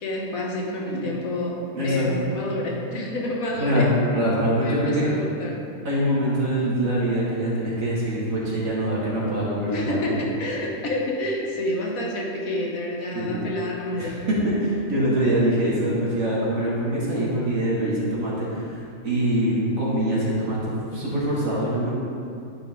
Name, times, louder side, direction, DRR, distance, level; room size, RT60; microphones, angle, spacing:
voice 1, 0.0-4.2 4.6-5.6 9.7-14.2 20.9-21.0, left 1 dB, 80° left, -2 dB, 1.6 m, -29 dB
voice 2, 1.7-2.3 3.5-5.0 5.8-10.2 13.1-13.4 14.0-21.9, right 1 dB, 75° right, -6 dB, 2.3 m, -24 dB
11.0 x 5.2 x 3.7 m, 2.5 s
omnidirectional pair, 1.4 m